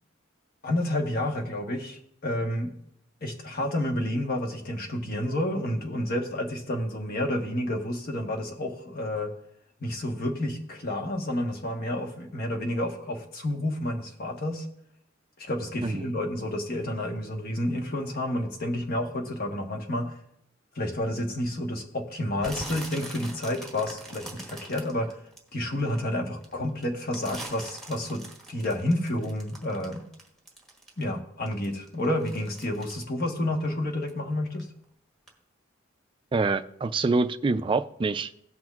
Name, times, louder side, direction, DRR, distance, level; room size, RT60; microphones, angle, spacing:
voice 1, 0.6-2.8 3.2-9.3 9.8-14.7 15.4-20.2 20.7-25.2 25.5-30.0 31.0-34.7, left 1 dB, 50° left, 3 dB, 1.2 m, -30 dB
sound 1, 22.4-26.0 26.4-31.2 31.5-34.2 34.5-34.8 35.3-35.4, right 1 dB, ahead, 1.4 m, -42 dB
voice 2, 36.3-38.3, right 3 dB, 25° right, 9 dB, 0.3 m, -26 dB
17.5 x 6.1 x 2.4 m, 0.74 s
head